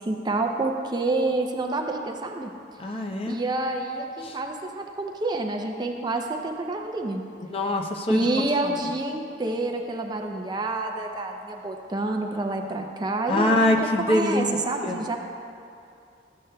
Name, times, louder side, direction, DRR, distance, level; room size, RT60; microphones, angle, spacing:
voice 1, 0.0-2.5 3.3-7.2 7.5-7.7 8.1-13.7 14.1-15.2, right 2 dB, 25° right, 3 dB, 0.4 m, -28 dB
voice 2, 2.8-3.4 4.2-4.4 7.5-8.3 8.6-8.8 13.3-14.6 14.8-15.0, left 1 dB, 35° left, 1 dB, 0.6 m, -24 dB
13.0 x 8.1 x 2.2 m, 2.6 s
head